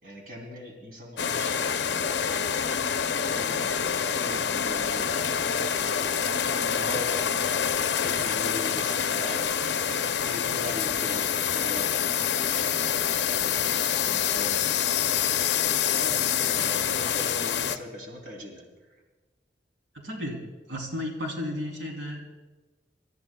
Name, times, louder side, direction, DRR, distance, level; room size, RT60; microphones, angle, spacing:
voice 1, 0.0-2.7 3.0-5.7 6.5-7.1 8.0-9.5 9.9-12.8 14.1-15.0 15.9-18.7, equal, 50° right, 0 dB, 3.1 m, -41 dB
sound 1, 1.2-17.8, left 8 dB, 65° left, 0.6 m, -26 dB
voice 2, 16.1-16.7 19.9-22.4, left 1 dB, 90° right, 0 dB, 3.1 m, -35 dB
27.5 x 14.0 x 2.3 m, 1.2 s
head